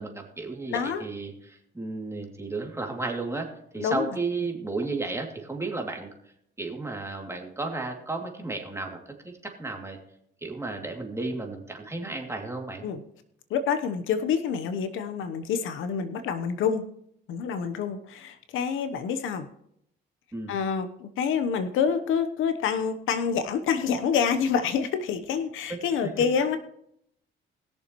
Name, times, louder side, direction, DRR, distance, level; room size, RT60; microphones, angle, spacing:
voice 1, 0.0-3.5 3.7-6.1 6.6-9.0 9.2-10.0 10.4-12.8 20.3-20.5 25.7-25.8 26.0-26.1, right 3 dB, 15° right, 1 dB, 2.6 m, -33 dB
voice 2, 0.7-1.0 3.8-4.2 12.8-13.0 13.5-16.8 17.3-19.5 20.5-26.6, left 7 dB, 85° left, 9 dB, 1.0 m, -27 dB
20.5 x 7.0 x 3.1 m, 0.72 s
cardioid pair, 90°, 20 cm